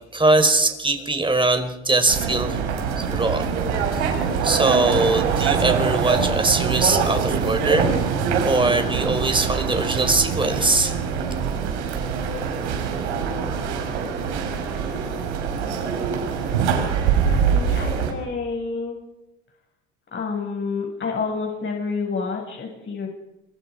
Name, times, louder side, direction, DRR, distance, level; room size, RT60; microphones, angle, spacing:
voice 1, 0.1-2.7 3.0-3.5 4.4-7.9 8.4-10.9, right 2 dB, 15° right, 7 dB, 5.0 m, -21 dB
sound 1, 2.1-18.1, right 6 dB, 90° right, 5.9 m, -24 dB
voice 2, 17.3-19.0 20.1-23.1, left 4 dB, 35° left, 0 dB, 7.3 m, -29 dB
27.0 x 24.5 x 5.3 m, 0.96 s
hypercardioid pair, 75°, 34 cm